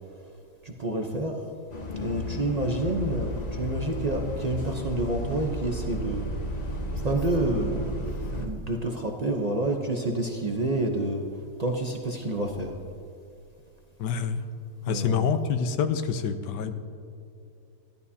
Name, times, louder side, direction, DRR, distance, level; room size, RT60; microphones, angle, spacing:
voice 1, 0.6-1.4 2.0-6.3 7.0-11.2 11.6-12.8 14.9-15.2, right 2 dB, 60° right, 1 dB, 0.4 m, -28 dB
Bus, 1.7-8.5, equal, 35° left, 0.7 m, -33 dB
voice 2, 14.0-14.4 14.9-16.7, left 6 dB, 70° left, 10 dB, 1.3 m, -26 dB
16.0 x 12.0 x 2.8 m, 2.6 s
omnidirectional pair, 2.0 m